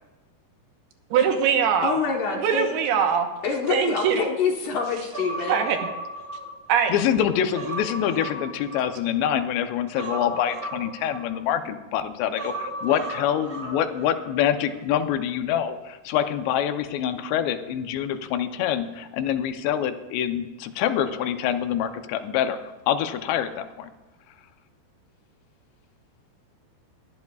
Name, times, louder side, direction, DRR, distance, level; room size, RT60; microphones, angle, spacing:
voice 1, 1.1-2.0 2.4-3.3 3.7-4.2 5.5-5.8 6.7-6.9, right 7 dB, 75° right, 5 dB, 2.8 m, -22 dB
voice 2, 1.8-3.1 3.4-5.6, left 5 dB, 65° left, 0 dB, 2.2 m, -26 dB
Human voice, 5.1-6.9 7.3-9.3 10.0-11.7 12.4-14.3 14.6-14.7, right 2 dB, 20° right, 2.3 m, -35 dB
voice 3, 6.9-23.9, left 9 dB, 85° left, 8 dB, 3.0 m, -26 dB
21.5 x 13.0 x 2.4 m, 1.2 s
omnidirectional pair, 4.9 m